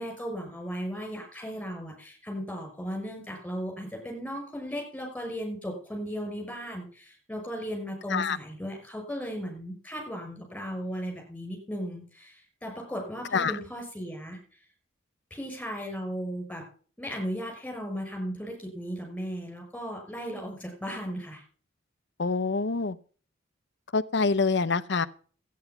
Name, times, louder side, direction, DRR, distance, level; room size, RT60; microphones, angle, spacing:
voice 1, 0.0-14.4 15.3-16.6 17.0-21.4, equal, 5° left, 2 dB, 6.1 m, -36 dB
voice 2, 22.2-23.0 23.9-25.1, left 4 dB, 60° left, 14 dB, 0.7 m, -26 dB
13.5 x 9.4 x 5.8 m, 0.42 s
head